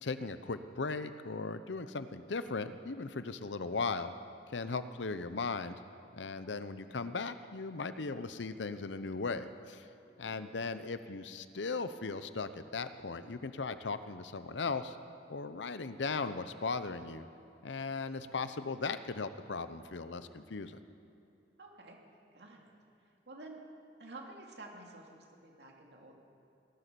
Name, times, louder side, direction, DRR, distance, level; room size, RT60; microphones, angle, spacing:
voice 1, 0.0-4.1 4.5-5.8 6.2-9.9 10.2-15.0 15.3-17.3 17.6-20.8, left 4 dB, 85° left, 12 dB, 0.7 m, -37 dB
voice 2, 21.6-22.0 22.3-22.7 23.3-23.6 24.0-26.1, right 2 dB, 70° right, 0 dB, 2.6 m, -50 dB
18.5 x 11.5 x 6.9 m, 2.8 s
head